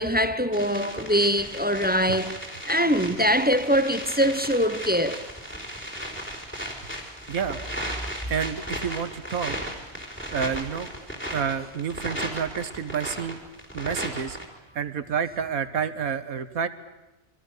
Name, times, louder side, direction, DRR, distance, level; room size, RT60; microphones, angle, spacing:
voice 1, 0.0-2.4 2.7-5.3, equal, 10° right, 0.8 m, -23 dB
sound 1, 0.5-14.5, equal, 10° left, 4.2 m, -36 dB
voice 2, 7.3-7.6 8.2-9.6 10.3-10.9 11.3-13.4 13.7-14.4 14.8-16.7, right 7 dB, 85° right, 1.7 m, -29 dB
28.0 x 24.5 x 6.7 m
omnidirectional pair, 1.5 m